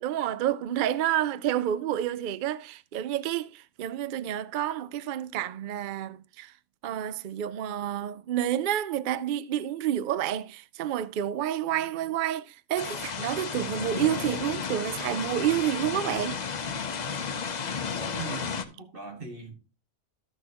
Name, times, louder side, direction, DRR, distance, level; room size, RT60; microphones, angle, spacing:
voice 1, 0.0-6.5 6.8-16.4, right 11 dB, 85° right, 0.4 m, -29 dB
sound 1, 12.8-18.6, left 6 dB, 40° left, 0.6 m, -33 dB
voice 2, 18.2-19.6, right 3 dB, 40° right, 1.9 m, -40 dB
14.0 x 6.2 x 2.9 m
omnidirectional pair, 1.4 m